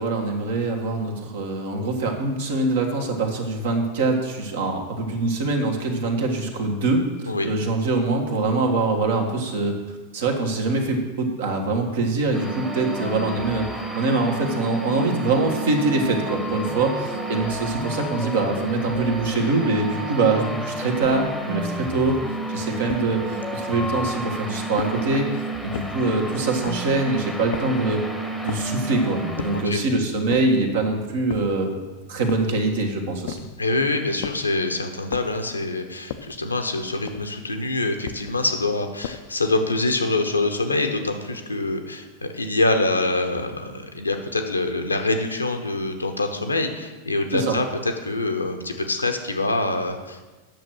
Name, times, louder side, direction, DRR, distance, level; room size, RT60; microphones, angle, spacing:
voice 1, 0.0-7.0 7.4-9.8 10.1-13.7 14.0-22.2 22.5-25.3 25.6-28.0 28.4-31.7 32.1-33.5 47.3-47.6, right 3 dB, 60° right, 3 dB, 1.5 m, -24 dB
sound 1, 12.3-29.6, right 1 dB, ahead, 1.0 m, -30 dB
sound 2, 21.0-21.4 22.0-22.3 22.9-23.3 23.8-24.2 24.8-25.2 25.7-26.1 26.6-27.0 27.5-27.9 28.5-28.8 29.4-29.8 30.3-30.7 31.3-31.7 32.3-32.7 33.3-33.7 34.2-34.6 35.1-35.5 36.1-36.5 37.1-37.5 38.0-38.5 39.0-39.5, left 9 dB, 55° left, 0.5 m, -36 dB
voice 2, 29.5-29.8 33.6-50.2, left 2 dB, 80° left, 6 dB, 0.9 m, -25 dB
9.0 x 6.6 x 6.2 m, 1.2 s
figure-of-eight pair, 90°, 0 cm